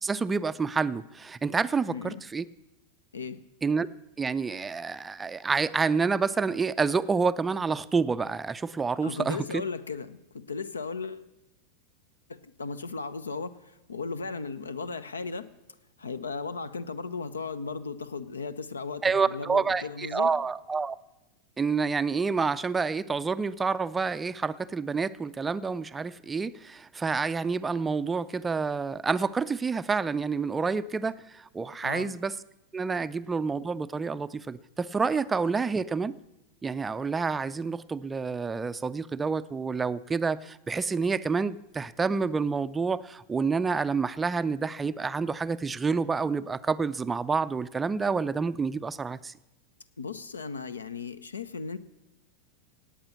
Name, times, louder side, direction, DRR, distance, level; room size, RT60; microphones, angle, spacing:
voice 1, 0.0-2.4 3.6-3.9 4.2-9.6 19.0-21.0 21.6-32.3 32.7-36.2 36.6-49.3, right 5 dB, 15° right, 15 dB, 0.4 m, -28 dB
voice 2, 1.9-2.2 3.1-3.4 9.0-11.3 12.3-13.5 13.9-15.5 16.0-20.3 31.8-32.1 50.0-51.8, left 4 dB, 75° left, 16 dB, 0.7 m, -36 dB
17.5 x 8.6 x 7.0 m, 0.94 s
figure-of-eight pair, 90°, 0 cm